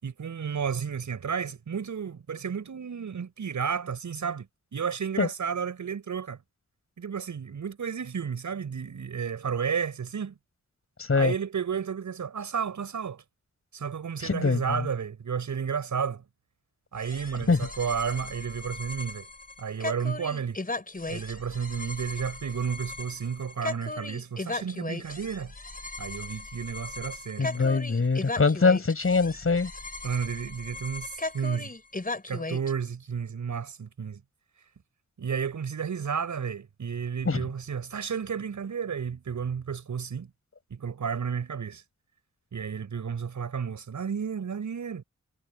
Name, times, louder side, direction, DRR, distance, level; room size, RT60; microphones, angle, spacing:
voice 1, 0.0-4.5 4.7-6.4 7.0-10.4 11.1-13.2 13.7-16.2 16.9-19.3 19.6-20.6 21.1-25.5 26.0-27.7 30.0-31.7 32.3-34.2 35.2-40.3 40.7-41.8 42.5-45.0, right 6 dB, 80° right, 7.3 m, -32 dB
voice 2, 11.0-11.3 14.2-14.6 17.5-17.6 27.4-29.7 37.2-37.5, left 4 dB, 50° left, 8.0 m, -23 dB
sound 1, 17.0-32.7, left 2 dB, 30° left, 5.2 m, -37 dB
cardioid pair, 55°, 29 cm